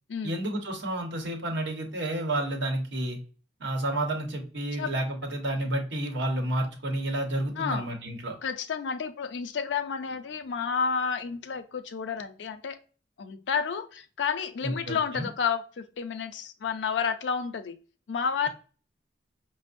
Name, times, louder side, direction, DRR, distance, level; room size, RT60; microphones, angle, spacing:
voice 1, 0.2-3.2 3.6-8.3 14.6-15.3, right 1 dB, 90° right, 3 dB, 0.9 m, -30 dB
voice 2, 7.6-7.9 8.4-12.8 13.2-17.8 18.1-18.5, left 6 dB, 80° left, 10 dB, 0.4 m, -30 dB
5.2 x 2.0 x 2.5 m, 0.38 s
head